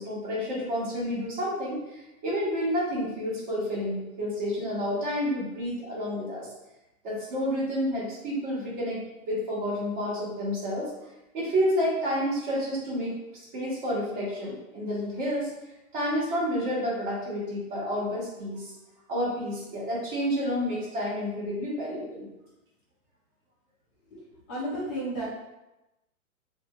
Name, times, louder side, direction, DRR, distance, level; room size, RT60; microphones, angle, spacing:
voice 1, 0.0-2.0 2.2-6.5 7.0-10.9 11.3-13.1 13.5-15.5 15.9-18.7 19.1-22.3, equal, 35° right, -6 dB, 1.3 m, -29 dB
voice 2, 24.5-25.2, right 1 dB, 10° left, -12 dB, 0.4 m, -32 dB
3.1 x 2.5 x 2.9 m, 0.96 s
hypercardioid pair, 155°, 43 cm